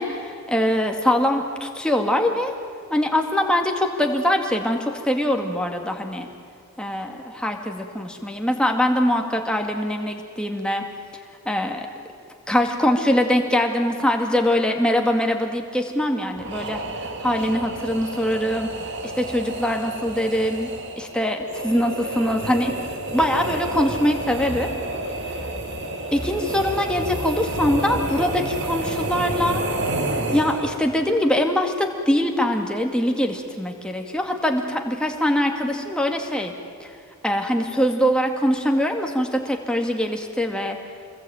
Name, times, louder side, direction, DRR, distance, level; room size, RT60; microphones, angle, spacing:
voice 1, 0.0-2.5 2.9-6.3 6.8-10.8 11.5-11.9 12.5-16.8 17.2-18.7 19.0-22.7 23.1-24.7 26.1-29.6 30.3-36.5 36.8-36.9 37.2-40.8, left 1 dB, 5° left, 2 dB, 2.2 m, -23 dB
sound 1, 16.4-30.9, right 2 dB, 55° right, 2.5 m, -30 dB
27.5 x 21.5 x 9.0 m, 2.4 s
head